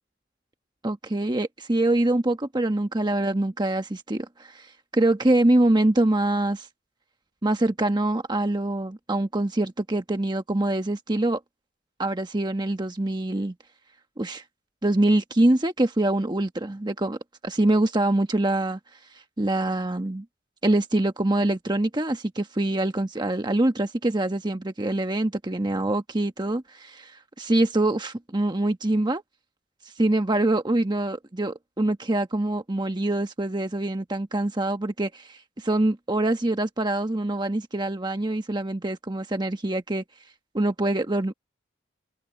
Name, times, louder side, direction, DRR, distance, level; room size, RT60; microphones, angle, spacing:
voice 1, 0.8-4.7 4.9-6.7 7.4-11.4 12.0-13.5 14.2-14.4 14.8-18.8 19.4-20.2 20.6-29.2 30.0-40.0 40.5-41.3, right 1 dB, 25° right, 1.1 m, -24 dB
head